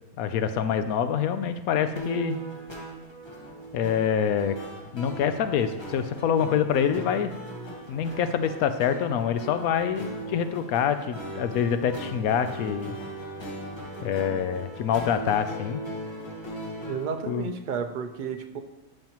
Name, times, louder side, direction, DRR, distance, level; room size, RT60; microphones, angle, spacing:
voice 1, 0.2-2.4 3.7-4.6 4.9-7.3 7.9-12.9 14.0-15.8 17.3-17.5, left 8 dB, 85° left, 10 dB, 1.1 m, -26 dB
sound 1, 1.9-17.2, right 1 dB, 20° left, 1.2 m, -38 dB
voice 2, 16.9-18.6, right 6 dB, 50° right, 6 dB, 0.6 m, -32 dB
13.0 x 5.4 x 3.0 m, 1.0 s
omnidirectional pair, 1.5 m